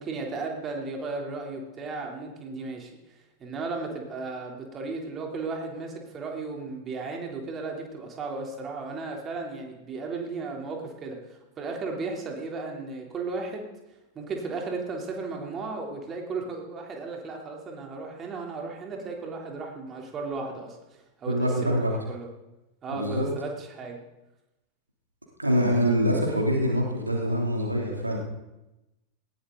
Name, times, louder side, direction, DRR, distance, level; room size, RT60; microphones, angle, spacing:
voice 1, 0.0-2.9 3.4-13.7 14.2-22.3 22.8-24.0, right 3 dB, 25° right, 1 dB, 3.5 m, -35 dB
voice 2, 21.3-21.9 22.9-23.3 25.4-28.2, equal, 85° right, 0 dB, 3.0 m, -24 dB
19.5 x 17.0 x 4.0 m, 0.98 s
figure-of-eight pair, 90°, 0 cm